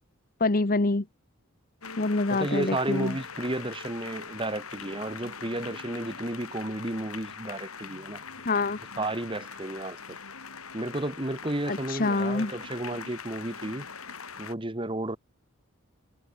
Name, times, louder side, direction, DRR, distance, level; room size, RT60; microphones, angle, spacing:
voice 1, 0.4-1.0 2.0-3.2 8.4-8.8 11.7-12.5, left 3 dB, 40° left, 1.0 m, -26 dB
sound 1, 1.8-14.5, left 5 dB, 85° left, 7.8 m, -42 dB
voice 2, 2.3-8.2 9.0-10.2 10.7-13.9 14.4-15.2, right 1 dB, 25° right, 1.5 m, -32 dB
head